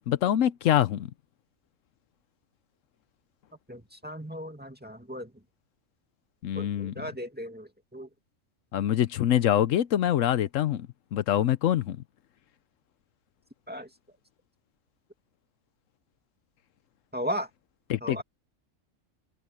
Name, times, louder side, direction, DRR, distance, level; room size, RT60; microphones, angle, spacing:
voice 1, 0.1-1.1 6.4-6.9 8.7-12.0 17.9-18.2, left 11 dB, 80° left, 1.0 m, -25 dB
voice 2, 3.7-5.3 6.5-8.1 13.7-13.9 17.1-17.5 18.0-18.2, equal, 5° right, 2.3 m, -36 dB
open air
omnidirectional pair, 1.3 m